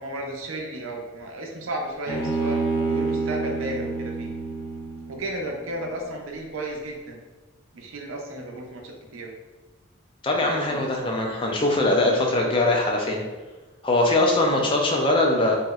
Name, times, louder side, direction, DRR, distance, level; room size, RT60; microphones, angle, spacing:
voice 1, 0.0-2.6 2.9-4.3 5.1-7.2 7.7-9.3 10.4-11.1 14.5-14.7, right 1 dB, 85° right, 1 dB, 0.6 m, -34 dB
Bowed string instrument, 2.1-5.4, right 3 dB, 85° left, 0.7 m, -27 dB
voice 2, 10.2-13.2 13.8-15.6, left 2 dB, 25° left, 0 dB, 0.4 m, -21 dB
2.9 x 2.8 x 2.3 m, 1.2 s
head